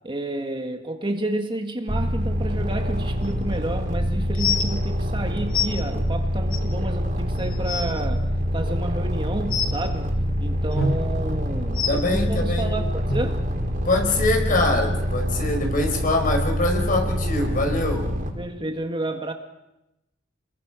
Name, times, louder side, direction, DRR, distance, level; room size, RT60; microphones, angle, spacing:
voice 1, 0.0-10.1 10.4-13.5 18.3-19.3, right 1 dB, 25° right, 1.7 m, -30 dB
sound 1, 1.9-18.3, equal, 45° right, 5.1 m, -26 dB
sound 2, 3.3-3.4 4.3-4.7 5.5-5.7 6.5-6.6 7.2-7.3 7.5-7.9 9.5-9.7 10.7-10.9 11.7-11.9 13.1-13.2 13.9-14.0 14.7-14.8, left 4 dB, 75° left, 2.6 m, -24 dB
voice 2, 11.9-12.7 13.8-18.1, left 2 dB, 45° left, 5.1 m, -24 dB
29.0 x 22.5 x 6.3 m
head